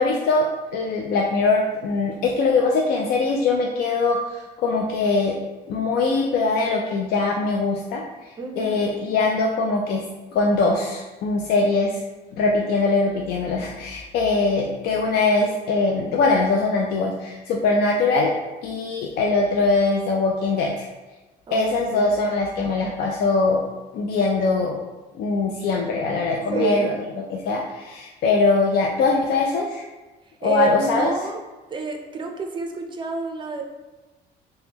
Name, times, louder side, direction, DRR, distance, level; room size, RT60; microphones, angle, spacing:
voice 1, 0.0-5.4 5.7-8.0 8.6-10.0 10.3-12.0 12.4-18.3 18.6-20.9 21.5-23.7 23.9-24.8 25.1-27.0 27.3-29.8 30.4-31.1, left 3 dB, 65° left, -1 dB, 0.4 m, -22 dB
voice 2, 8.4-9.0 21.5-22.2 26.5-27.0 30.4-31.4 31.7-33.6, right 4 dB, 30° right, 3 dB, 0.5 m, -28 dB
3.4 x 2.1 x 2.8 m, 1.2 s
cardioid pair, 110°, 17 cm